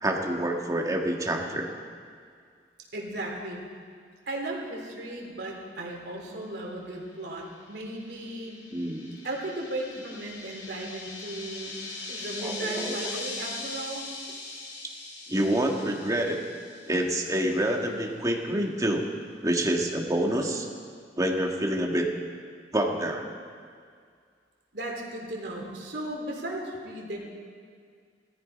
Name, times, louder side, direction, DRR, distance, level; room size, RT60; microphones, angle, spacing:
voice 1, 0.0-1.7 8.7-9.1 12.4-13.0 15.3-16.4 16.9-19.1 19.4-20.7 21.2-22.1 22.7-23.2, right 1 dB, 20° right, 1 dB, 1.7 m, -27 dB
voice 2, 2.9-3.6 4.3-8.6 9.2-11.7 12.1-14.1 24.7-27.2, right 1 dB, 70° right, -1 dB, 3.5 m, -36 dB
sound 1, 7.5-17.3, left 3 dB, 85° left, 4.5 m, -40 dB
19.0 x 14.0 x 5.2 m, 2.1 s
head